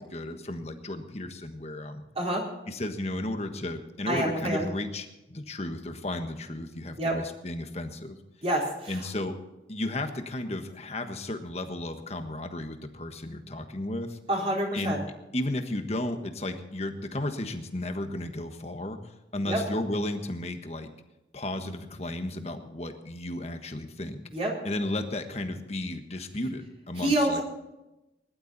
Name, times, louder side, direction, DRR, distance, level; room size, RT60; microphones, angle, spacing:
voice 1, 0.0-2.0 2.7-8.2 8.9-9.4 9.7-14.2 14.7-15.0 15.3-20.9 21.3-24.2 24.6-27.4, left 1 dB, 35° left, 6 dB, 1.4 m, -34 dB
voice 2, 4.1-4.7 7.0-7.1 8.4-9.0 14.3-15.0 19.5-19.6 24.3-24.5 27.0-27.4, right 1 dB, 35° right, -3 dB, 4.1 m, -27 dB
20.0 x 12.0 x 4.1 m, 0.95 s
head